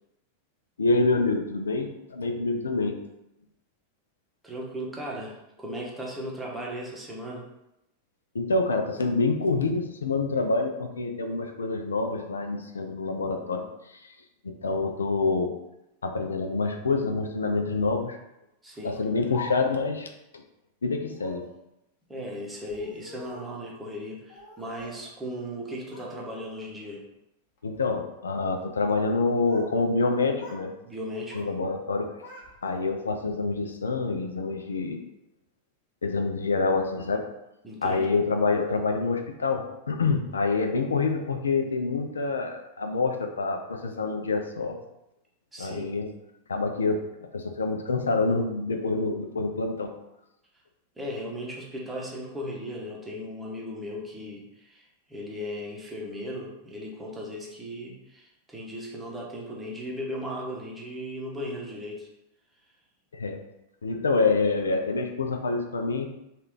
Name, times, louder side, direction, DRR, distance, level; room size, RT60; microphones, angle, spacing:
voice 1, 0.8-3.0 8.3-13.7 13.9-14.1 14.4-15.5 16.0-18.2 18.8-20.1 20.3-20.4 20.8-21.4 27.6-30.7 31.3-32.1 32.6-35.0 36.0-37.3 37.8-44.8 45.6-46.1 46.5-49.9 63.1-63.4 63.8-66.1, left 3 dB, 70° left, 5 dB, 0.4 m, -27 dB
voice 2, 4.4-7.5 18.6-19.0 22.1-27.0 30.8-31.6 37.6-38.2 45.5-45.9 51.0-62.1, equal, 10° right, -3 dB, 0.9 m, -37 dB
Speech, 18.8-19.9 21.1-21.5 22.5-23.6 24.3-25.1 25.4-26.1 26.5-26.9 27.6-27.9 29.0-29.7 30.0-30.7 30.9-31.5 31.9-33.1, left 3 dB, 50° left, 1.1 m, -45 dB
3.2 x 2.4 x 3.7 m, 0.88 s
figure-of-eight pair, 90°, 0 cm